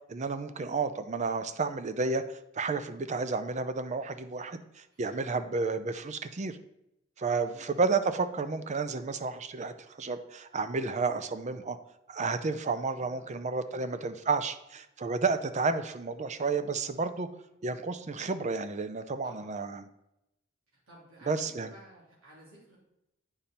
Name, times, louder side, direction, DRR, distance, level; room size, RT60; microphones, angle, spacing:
voice 1, 0.1-6.6 7.2-11.8 12.1-17.3 17.6-19.8 21.3-21.7, right 4 dB, 35° right, 11 dB, 0.5 m, -31 dB
voice 2, 4.9-5.4 7.3-7.7 12.9-14.2 17.3-17.4 19.2-19.5 20.7-22.8, right 1 dB, 85° right, -5 dB, 2.9 m, -54 dB
8.8 x 5.3 x 4.3 m, 0.86 s
head